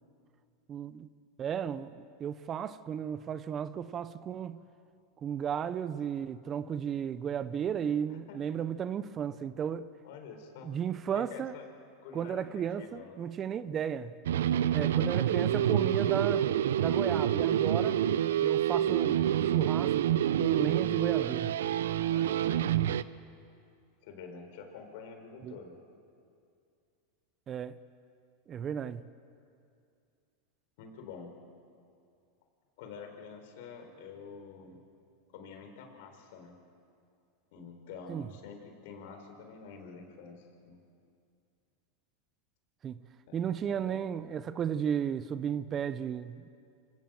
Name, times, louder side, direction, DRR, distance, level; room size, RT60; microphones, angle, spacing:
voice 1, 0.7-1.1 1.4-4.6 5.2-9.9 10.6-11.5 12.1-14.1 14.7-16.5 16.8-18.0 18.4-19.2 19.5-20.0 20.4-21.5 25.4-25.6 27.5-27.8 28.5-29.0 38.1-38.3 42.8-43.0 43.3-46.5, right 8 dB, 35° right, 0.8 m, -34 dB
voice 2, 8.1-8.6 10.0-10.7 11.1-11.7 12.0-13.1 22.1-22.6 24.0-25.8 30.8-31.3 32.8-34.8 35.3-36.6 37.5-40.8 43.3-43.4 43.6-44.0, left 5 dB, 65° left, 4.3 m, -48 dB
sound 1, 14.3-23.0, right 11 dB, 80° right, 0.6 m, -27 dB
26.5 x 17.0 x 7.8 m
hypercardioid pair, 105°, 0 cm